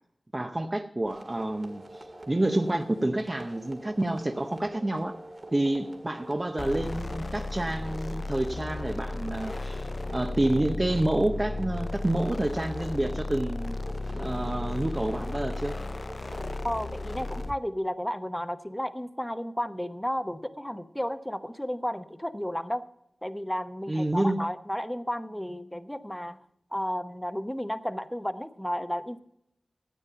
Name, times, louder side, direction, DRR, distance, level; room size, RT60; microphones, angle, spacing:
voice 1, 0.3-5.2 5.5-13.8 14.1-15.8 23.9-24.4, right 1 dB, 25° right, 6 dB, 0.7 m, -28 dB
sound 1, 1.1-17.5, right 1 dB, 45° right, 1.9 m, -45 dB
sound 2, 6.6-17.6, left 2 dB, 45° left, 0.3 m, -35 dB
voice 2, 16.6-22.8 23.2-26.4 26.7-29.2, equal, 5° left, 10 dB, 0.8 m, -33 dB
13.5 x 8.9 x 5.6 m, 0.79 s
wide cardioid pair, 90°, 0 cm